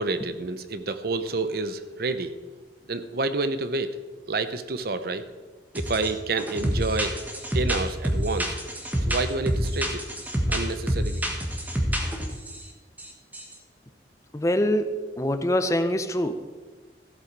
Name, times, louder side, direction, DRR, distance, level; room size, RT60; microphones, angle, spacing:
voice 1, 0.0-2.3 2.9-3.9 4.3-5.2 5.7-8.6 9.1-10.0 10.5-11.2, right 3 dB, 60° right, 11 dB, 0.7 m, -29 dB
sound 1, 5.7-6.1 6.4-12.6 13.0-13.5, equal, 10° right, 1.3 m, -27 dB
voice 2, 14.3-16.3, equal, 20° left, 10 dB, 0.6 m, -24 dB
14.5 x 7.6 x 4.6 m, 1.3 s
head